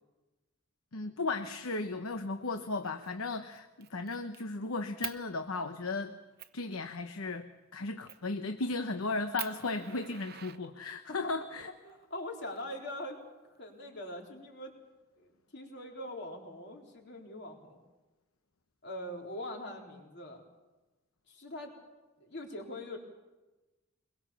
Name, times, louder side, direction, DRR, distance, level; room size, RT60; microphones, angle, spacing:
voice 1, 0.9-6.2 6.5-11.7, left 3 dB, 85° left, 8 dB, 1.0 m, -35 dB
Fire, 2.8-3.1 3.5-4.4 5.0-5.2 5.8-5.9 6.4-6.6 8.1-8.3 8.8-8.9 9.4-11.1 12.2-13.2, right 12 dB, 45° right, 0.9 m, -44 dB
voice 2, 11.6-13.2 13.5-14.7 15.2-17.8 18.8-20.4 21.3-21.7 22.2-23.0, left 1 dB, 55° left, 1 dB, 3.8 m, -42 dB
24.0 x 21.5 x 7.1 m, 1.1 s
head